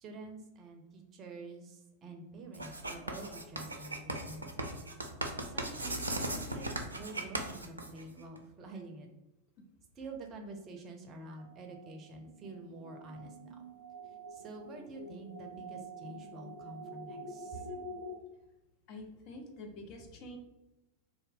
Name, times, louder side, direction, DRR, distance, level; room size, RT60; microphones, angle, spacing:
voice 1, 0.0-4.8 5.5-6.7 6.9-9.1 10.0-13.6 14.3-17.7, right 3 dB, 30° right, 3 dB, 0.6 m, -48 dB
Writing, 2.5-8.4, right 2 dB, 80° right, 0.4 m, -38 dB
sound 1, 11.4-18.2, right 1 dB, 85° left, 0.4 m, -47 dB
voice 2, 18.9-20.4, left 1 dB, 40° left, 3 dB, 0.6 m, -47 dB
2.6 x 2.1 x 3.7 m, 0.97 s
figure-of-eight pair, 90°, 0 cm